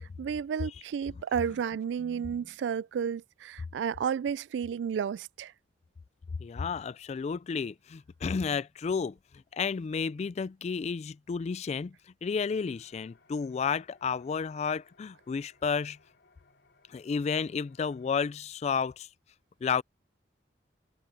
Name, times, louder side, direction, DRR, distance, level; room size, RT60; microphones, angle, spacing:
voice 1, 0.0-5.5, right 7 dB, 85° right, 0.3 m, -32 dB
voice 2, 6.4-9.2 9.5-12.0 12.2-16.0 16.9-19.1 19.6-19.8, left 5 dB, 40° left, 0.3 m, -31 dB
sound 1, 12.3-18.3, left 3 dB, 70° left, 4.6 m, -65 dB
head